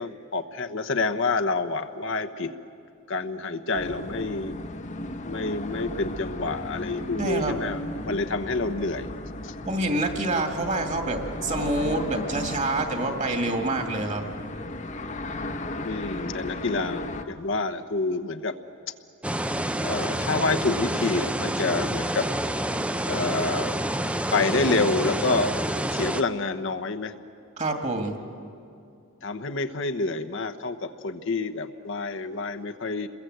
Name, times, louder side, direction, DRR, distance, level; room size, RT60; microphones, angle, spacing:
voice 1, 0.0-2.5 3.1-4.5 5.3-9.1 9.4-9.5 15.8-18.6 19.8-22.3 23.1-23.8 24.3-25.5 25.9-27.1 29.2-33.1, left 3 dB, 60° left, 7 dB, 1.1 m, -28 dB
sound 1, 3.7-17.2, left 1 dB, 35° left, 1.0 m, -35 dB
voice 2, 7.2-7.6 9.6-14.3 27.6-28.2, right 2 dB, 35° right, 4 dB, 2.4 m, -27 dB
sound 2, 19.2-26.2, right 1 dB, 5° right, 0.6 m, -28 dB
29.0 x 22.0 x 8.0 m, 2.5 s
head